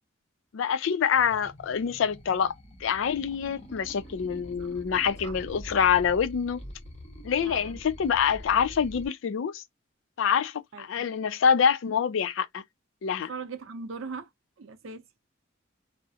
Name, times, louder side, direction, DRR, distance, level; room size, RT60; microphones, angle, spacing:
voice 1, 0.5-2.5 2.8-6.6 7.2-9.6 10.2-12.6 13.0-13.3, left 7 dB, 70° left, 0.4 m, -26 dB
sound 1, 1.2-9.1, equal, 30° left, 0.6 m, -45 dB
voice 2, 4.3-4.8 5.2-5.4 7.4-7.8 10.7-11.1 13.3-14.3 14.6-15.0, right 4 dB, 75° right, 0.6 m, -40 dB
2.3 x 2.0 x 2.7 m
head